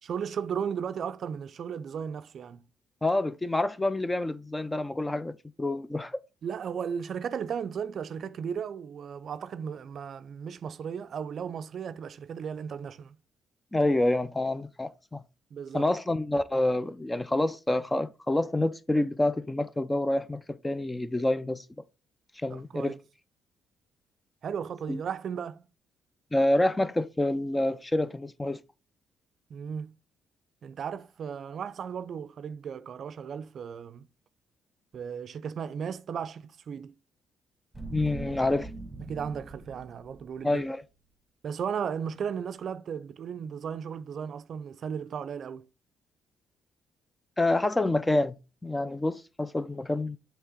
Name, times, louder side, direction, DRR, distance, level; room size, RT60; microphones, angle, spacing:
voice 1, 0.1-2.6 6.4-13.2 15.5-15.9 22.5-23.0 24.4-25.7 29.5-29.9 30.6-34.1 34.9-37.0 39.0-40.6 41.4-45.7, right 7 dB, 60° right, 0.4 m, -35 dB
voice 2, 3.0-6.2 13.7-15.2 15.7-21.6 22.4-22.9 24.9-25.0 26.3-28.6 37.9-38.7 40.4-40.8 47.4-48.4 48.6-50.2, left 2 dB, 15° left, 0.4 m, -27 dB
sound 1, 37.7-40.7 40.9-41.0, right 2 dB, 5° right, 1.7 m, -42 dB
7.6 x 3.4 x 3.8 m
cardioid pair, 90°, 0 cm